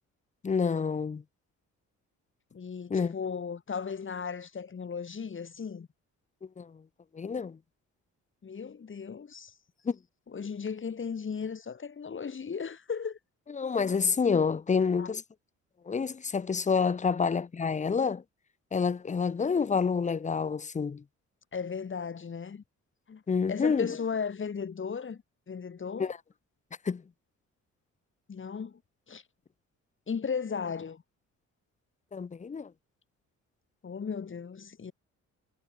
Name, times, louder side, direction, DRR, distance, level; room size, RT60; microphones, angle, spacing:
voice 1, 0.4-1.2 2.9-3.1 6.6-6.8 7.1-7.6 9.8-10.0 13.5-15.2 15.9-18.2 18.7-21.0 23.3-23.9 26.0-26.2 26.8-27.0 32.1-32.7, left 5 dB, 25° left, 0.8 m, -28 dB
voice 2, 2.5-5.9 8.4-9.5 10.3-13.2 15.0-15.1 21.5-22.6 23.1-23.2 23.5-26.1 28.3-28.8 29.1-29.2 30.1-31.0 33.8-34.9, left 6 dB, 40° left, 6.3 m, -36 dB
cardioid pair, 90°, 30 cm